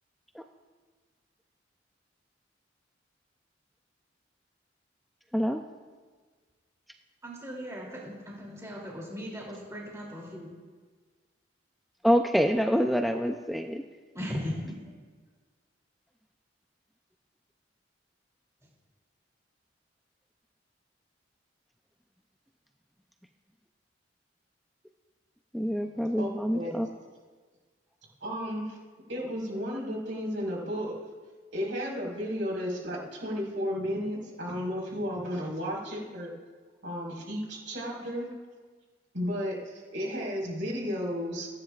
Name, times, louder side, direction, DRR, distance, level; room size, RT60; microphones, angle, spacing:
voice 1, 7.2-10.5 14.1-14.8, equal, 15° right, -3 dB, 2.9 m, -37 dB
voice 2, 12.0-13.8 25.5-26.9, equal, ahead, 4 dB, 0.5 m, -26 dB
voice 3, 26.2-26.7 28.2-28.8 29.1-30.9 31.5-36.4 36.8-38.3 39.1-41.5, equal, 80° right, -3 dB, 4.5 m, -33 dB
28.5 x 10.5 x 2.4 m, 1.5 s
head